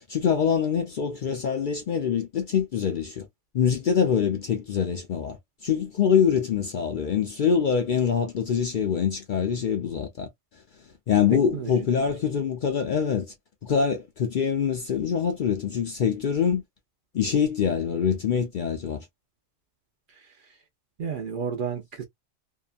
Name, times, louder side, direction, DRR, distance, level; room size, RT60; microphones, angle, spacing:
voice 1, 0.1-3.3 3.5-10.3 11.1-13.3 13.6-16.6 17.1-19.1, left 7 dB, 60° left, 0.6 m, -24 dB
voice 2, 11.5-12.2 20.1-20.6 21.0-22.0, right 6 dB, 55° right, 0.7 m, -33 dB
2.7 x 2.2 x 2.3 m
omnidirectional pair, 1.2 m